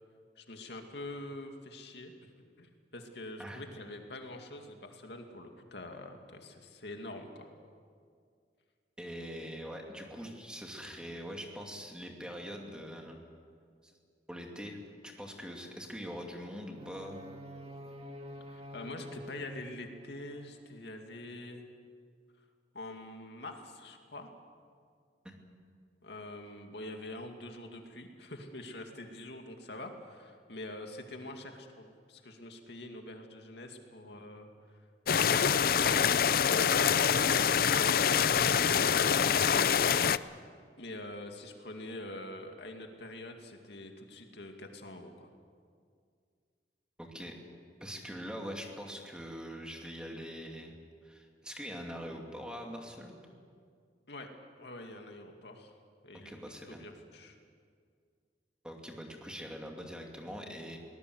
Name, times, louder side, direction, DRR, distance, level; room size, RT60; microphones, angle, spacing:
voice 1, 0.4-2.3 2.6-7.5 18.5-21.6 22.7-24.3 26.0-34.8 35.1-37.0 40.8-45.3 54.1-54.3 54.6-55.7 56.0-56.3 56.7-57.4, left 1 dB, 75° left, 4 dB, 2.3 m, -45 dB
voice 2, 9.0-13.2 13.8-13.9 14.3-14.8 15.0-17.3 25.2-25.4 38.1-38.7 39.2-40.0 47.0-47.4 47.8-50.7 51.0-53.2 56.2-56.8 58.6-60.8, equal, 5° right, 1 dB, 2.5 m, -43 dB
sound 1, 16.7-20.8, equal, 35° right, 2.0 m, -47 dB
sound 2, 35.1-40.2, left 7 dB, 55° left, 0.5 m, -25 dB
23.5 x 19.5 x 8.0 m, 2.1 s
head